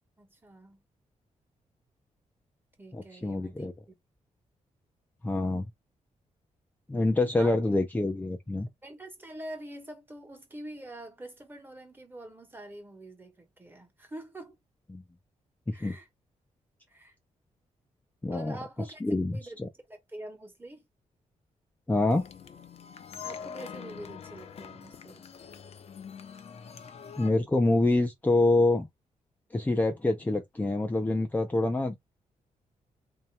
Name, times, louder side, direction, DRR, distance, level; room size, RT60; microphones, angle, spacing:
voice 1, 0.2-0.8 2.8-3.7 7.4-7.6 8.8-14.6 15.7-16.1 16.9-17.1 18.3-19.0 19.3-19.6 19.9-20.9 23.2-25.3, right 1 dB, 15° right, 1.4 m, -45 dB
voice 2, 2.9-3.7 5.2-5.7 6.9-8.7 14.9-15.0 15.7-16.0 18.2-18.6 19.0-19.7 21.9-22.2 27.2-28.9 29.5-31.9, left 2 dB, 15° left, 0.6 m, -26 dB
sound 1, 22.1-27.3, left 7 dB, 55° left, 0.7 m, -44 dB
3.5 x 2.9 x 3.2 m
cardioid pair, 115°, 13 cm